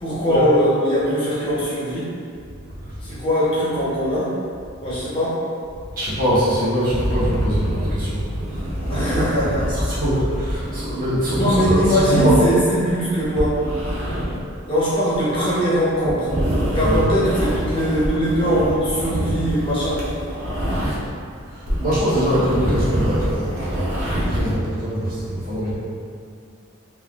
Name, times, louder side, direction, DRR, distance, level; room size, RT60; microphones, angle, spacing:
voice 1, 0.0-2.1 3.0-4.3 4.8-5.4 8.9-9.7 11.4-13.6 14.7-16.3 16.7-20.0, equal, 25° left, -8 dB, 0.5 m, -21 dB
voice 2, 5.9-8.7 9.7-12.4 16.8-17.1 21.5-25.8, equal, 40° right, -9 dB, 0.7 m, -23 dB
sound 1, 6.9-21.2 21.5-24.6, equal, 75° right, 0.6 m, -26 dB
3.2 x 2.2 x 2.3 m, 2.3 s
head